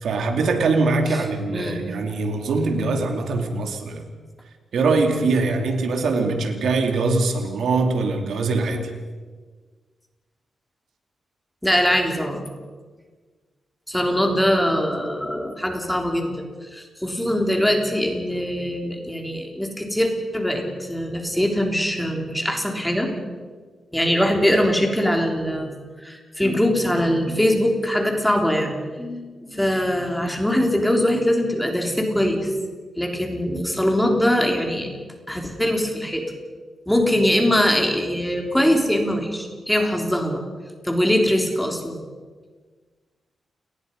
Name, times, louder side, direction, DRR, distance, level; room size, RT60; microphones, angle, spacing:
voice 1, 0.0-4.0 4.7-8.9, right 3 dB, 80° right, 5 dB, 2.6 m, -22 dB
voice 2, 11.6-12.4 13.9-23.1 23.9-28.7 29.0-32.7 33.0-34.9 35.3-36.2 36.9-40.4 40.8-42.0, equal, 5° left, 2 dB, 3.3 m, -22 dB
29.5 x 19.5 x 5.4 m, 1.4 s
wide cardioid pair, 140°, 0 cm